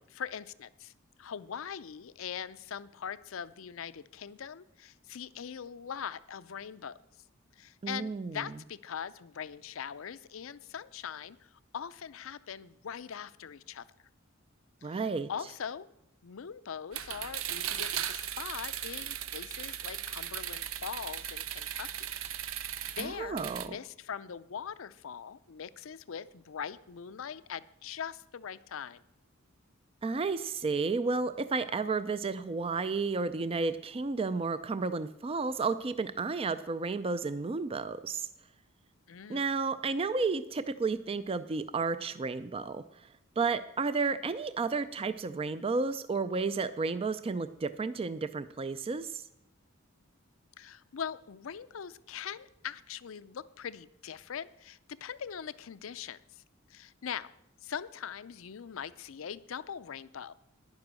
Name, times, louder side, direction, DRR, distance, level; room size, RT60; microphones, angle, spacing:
voice 1, 0.1-0.9 1.2-6.9 7.6-13.9 14.8-15.0 15.3-15.9 16.2-22.1 22.5-29.0 39.1-39.4 50.6-56.4 56.7-57.3 57.6-60.3, left 7 dB, 70° left, 16 dB, 0.5 m, -41 dB
voice 2, 7.8-8.4 14.8-15.3 23.0-23.8 30.0-38.3 39.3-43.1 43.4-49.2, right 4 dB, 30° right, 13 dB, 0.4 m, -32 dB
sound 1, 16.9-23.7, right 10 dB, 75° right, 0.6 m, -37 dB
10.5 x 9.7 x 6.2 m, 0.78 s
head